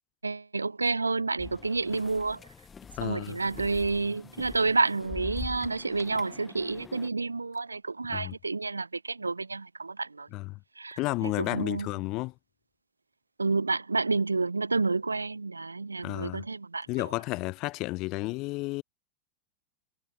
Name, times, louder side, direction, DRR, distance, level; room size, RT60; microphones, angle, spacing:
voice 1, 0.2-2.4 3.0-10.3 10.8-11.9 13.4-17.1, right 3 dB, 85° right, 1.0 m, -29 dB
sound 1, 1.4-7.1, left 6 dB, 20° left, 4.9 m, -44 dB
voice 2, 3.0-3.4 8.1-8.3 10.3-10.6 11.0-12.3 16.0-16.5 16.9-18.8, left 22 dB, 45° left, 3.4 m, -32 dB
figure-of-eight pair, 85°, 0 cm